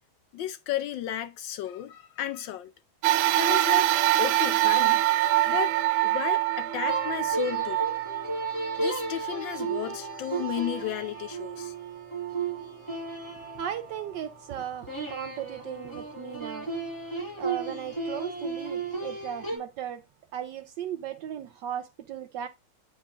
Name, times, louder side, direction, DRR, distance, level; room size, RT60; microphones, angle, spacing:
voice 1, 0.3-2.7 3.4-3.9 4.2-5.0 5.4-7.8 8.8-11.8, left 11 dB, 75° left, 1.2 m, -33 dB
sound 1, 3.0-11.6 12.3-12.4 13.5-13.6, right 15 dB, 90° right, 1.5 m, -26 dB
sound 2, 6.9-14.3 14.9-19.6, right 3 dB, 10° left, 5.9 m, -34 dB
voice 2, 13.5-16.7 17.4-20.0 20.3-22.5, right 10 dB, 75° right, 1.1 m, -36 dB
8.7 x 4.8 x 3.6 m
omnidirectional pair, 2.3 m